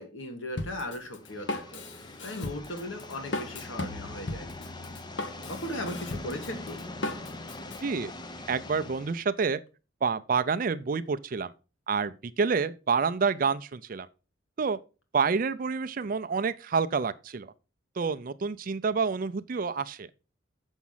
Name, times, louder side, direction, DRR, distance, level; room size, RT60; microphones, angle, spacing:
voice 1, 0.0-1.8 2.2-4.5 5.5-6.8, left 1 dB, 90° left, 1.7 m, -37 dB
Drum kit, 0.6-7.8, left 2 dB, 70° left, 1.1 m, -37 dB
sound 1, 1.2-9.2, left 2 dB, 25° left, 0.7 m, -42 dB
voice 2, 8.5-9.6 10.0-11.5 11.9-14.1 14.6-14.8 15.1-17.5 18.0-20.1, right 5 dB, 45° right, 0.4 m, -28 dB
7.2 x 6.1 x 5.6 m
head